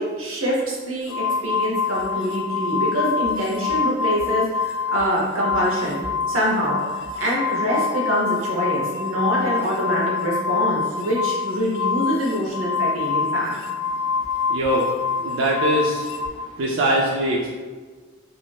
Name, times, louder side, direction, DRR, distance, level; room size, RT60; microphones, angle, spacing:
voice 1, 0.0-6.8 7.2-13.5, equal, 85° right, -4 dB, 0.7 m, -25 dB
sound 1, 1.1-5.1 5.3-16.3, left 5 dB, 70° left, 0.3 m, -25 dB
voice 2, 14.5-14.9 15.2-16.0 16.6-17.5, right 1 dB, 60° right, -3 dB, 0.3 m, -21 dB
2.5 x 2.2 x 3.3 m, 1.4 s
head